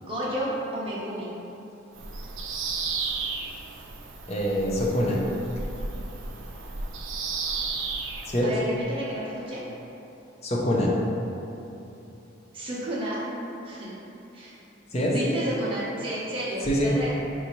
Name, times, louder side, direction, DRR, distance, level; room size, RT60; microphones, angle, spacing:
voice 1, 0.0-1.3 8.4-9.6 12.5-13.2 13.6-13.9 14.3-14.6 15.1-17.1, right 1 dB, 25° right, -8 dB, 0.8 m, -31 dB
Bird vocalization bird call bird song, 1.9-8.4, right 4 dB, 75° right, 0.4 m, -33 dB
voice 2, 4.3-5.2 8.2-8.5 10.4-10.9 14.9-15.2 16.6-16.9, equal, 35° left, -3 dB, 0.5 m, -24 dB
4.6 x 2.7 x 3.0 m, 2.9 s
head